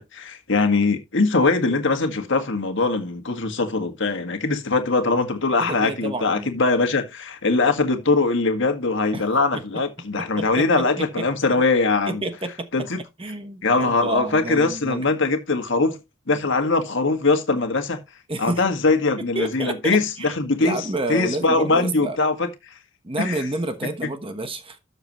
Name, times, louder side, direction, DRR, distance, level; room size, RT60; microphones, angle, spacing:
voice 1, 0.0-12.3 12.7-13.0 13.6-16.0 16.3-18.0 18.4-20.8 21.1-22.5 23.2-23.4, left 3 dB, 55° left, 1.8 m, -21 dB
voice 2, 5.6-6.5 9.1-9.6 10.2-11.2 12.1-12.7 13.2-15.0 18.3-18.7 19.3-20.3 20.6-22.2 23.0-24.8, right 2 dB, 25° right, 1.1 m, -29 dB
13.0 x 7.0 x 3.0 m
head